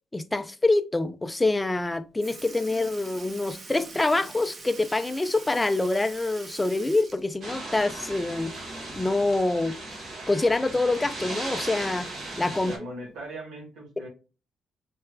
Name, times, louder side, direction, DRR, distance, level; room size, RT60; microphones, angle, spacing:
voice 1, 0.1-8.6 9.0-9.8 10.3-12.1 12.4-12.7, left 2 dB, 15° left, 0.4 m, -25 dB
Sink (filling or washing) / Liquid, 1.8-1.9 2.2-8.3 8.7-8.8 10.3-10.4 11.3-11.4 12.2-12.5 13.3-13.4, right 3 dB, 40° right, 0.8 m, -44 dB
sound 1, 7.4-12.8, right 2 dB, 60° right, 1.6 m, -37 dB
voice 2, 12.7-14.1, right 1 dB, 85° right, 1.9 m, -39 dB
3.3 x 3.3 x 2.2 m
cardioid pair, 90°, 0 cm